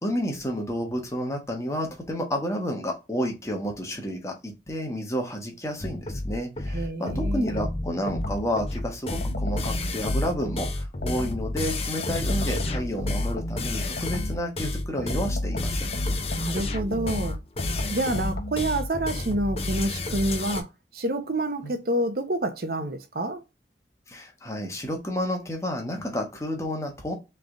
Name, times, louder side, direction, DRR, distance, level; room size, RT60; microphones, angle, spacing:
voice 1, 0.0-15.9 18.0-18.1 21.6-21.7 24.1-27.1, equal, 15° left, 1.2 m, -30 dB
sound 1, 5.8-20.6, left 2 dB, 35° left, 0.6 m, -31 dB
voice 2, 6.7-7.5 16.3-17.4 17.9-23.4, right 1 dB, 55° right, 0.8 m, -28 dB
sound 2, 7.1-8.6 9.1-11.6 12.0-14.5 15.0-18.8, left 1 dB, 60° left, 0.9 m, -32 dB
3.7 x 3.4 x 3.7 m
head